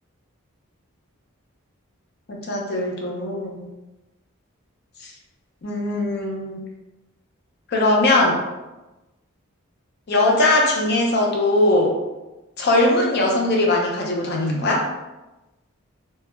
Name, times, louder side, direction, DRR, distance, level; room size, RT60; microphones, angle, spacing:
voice 1, 2.3-3.7 5.6-6.6 7.7-8.4 10.1-11.9 12.6-14.9, left 2 dB, 50° left, -1 dB, 0.5 m, -20 dB
2.2 x 2.0 x 3.0 m, 1.1 s
head